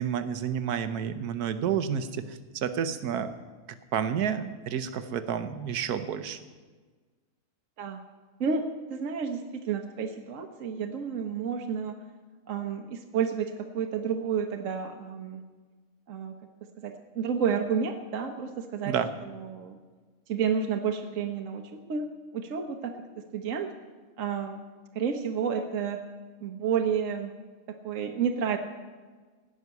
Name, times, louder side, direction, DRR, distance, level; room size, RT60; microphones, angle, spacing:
voice 1, 0.0-3.3 3.9-6.4 18.8-19.1, right 8 dB, 80° right, 11 dB, 1.4 m, -30 dB
voice 2, 8.9-12.0 12.5-15.4 16.1-16.3 16.8-18.9 19.2-19.8 20.3-23.7 24.2-24.6 24.9-26.0 26.4-27.3 27.7-28.6, right 7 dB, 60° right, 4 dB, 1.2 m, -30 dB
16.5 x 6.3 x 9.4 m, 1.4 s
omnidirectional pair, 1.6 m